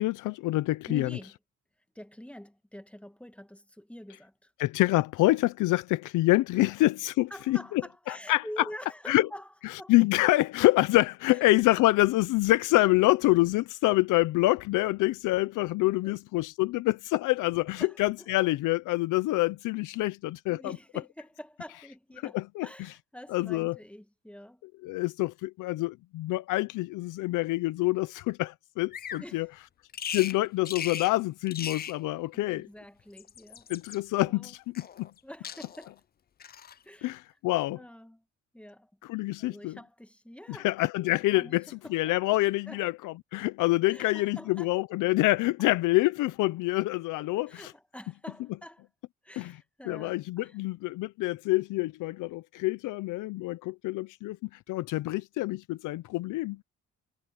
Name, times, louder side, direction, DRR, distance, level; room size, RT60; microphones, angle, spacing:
voice 1, 0.0-1.1 4.6-8.4 9.1-9.3 9.6-20.7 22.2-22.9 23.3-23.8 24.8-29.5 30.1-32.7 33.7-35.1 37.0-37.8 39.0-39.8 40.5-41.6 41.9-47.7 49.4-49.6 49.9-56.6, left 19 dB, 90° left, 0.6 m, -26 dB
voice 2, 0.9-1.3 2.0-4.5 6.5-6.7 7.3-9.5 9.8-9.9 11.3-11.4 11.8-11.9 16.0-16.1 17.8-18.3 20.5-24.6 29.2-29.5 30.2-30.3 32.3-33.7 34.1-34.5 35.2-36.0 36.8-37.1 37.7-38.2 38.5-38.9 39.4-40.7 41.3-42.2 42.7-42.8 43.9-44.7 47.5-48.9 49.2-50.6, equal, 5° left, 2.0 m, -46 dB
Bird vocalization bird call bird song, 28.9-29.3 29.9-30.4 30.7-31.1 31.5-32.0 33.0-34.0 34.8-35.2 35.4-35.9 36.4-36.8, left 8 dB, 30° left, 0.4 m, -38 dB
cardioid pair, 90°, 30 cm